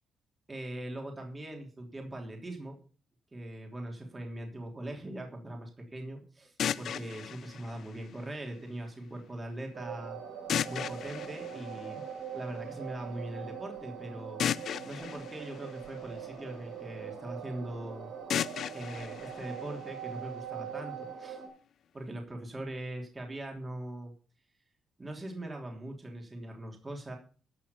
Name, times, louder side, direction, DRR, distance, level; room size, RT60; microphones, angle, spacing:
voice 1, 0.5-2.8 3.3-10.2 10.7-12.0 12.3-14.4 14.8-18.1 18.7-21.4 21.9-24.1 25.0-27.2, right 1 dB, 20° right, 1 dB, 3.1 m, -41 dB
sound 1, 6.6-8.6 10.5-12.5 14.4-16.6 18.3-20.3, left 9 dB, 65° left, 0.4 m, -36 dB
sound 2, 9.7-21.5, right 8 dB, 85° right, 3.7 m, -42 dB
13.5 x 6.0 x 6.8 m, 0.40 s
cardioid pair, 90°, 0 cm